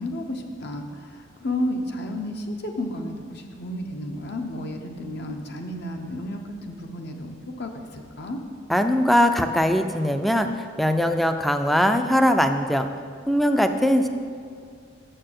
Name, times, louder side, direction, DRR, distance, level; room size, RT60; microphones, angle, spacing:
voice 1, 0.0-8.4, left 1 dB, 60° left, 4 dB, 0.9 m, -32 dB
voice 2, 8.7-12.9 13.3-14.1, equal, ahead, 7 dB, 0.4 m, -21 dB
6.6 x 6.6 x 7.7 m, 2.2 s
head